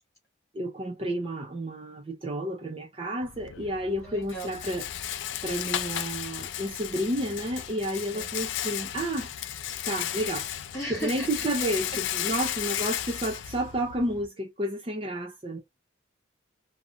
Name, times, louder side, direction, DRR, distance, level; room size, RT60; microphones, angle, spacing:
voice 1, 0.5-4.9 5.1-9.3 9.8-10.5 10.9-15.6, right 1 dB, 30° right, 0.5 m, -31 dB
Rattle, 3.2-14.3, left 11 dB, 70° left, 0.3 m, -34 dB
voice 2, 4.0-4.6 8.1-8.3 10.7-11.5 12.2-12.4, right 1 dB, 15° left, 1.5 m, -37 dB
2.8 x 2.3 x 2.5 m
head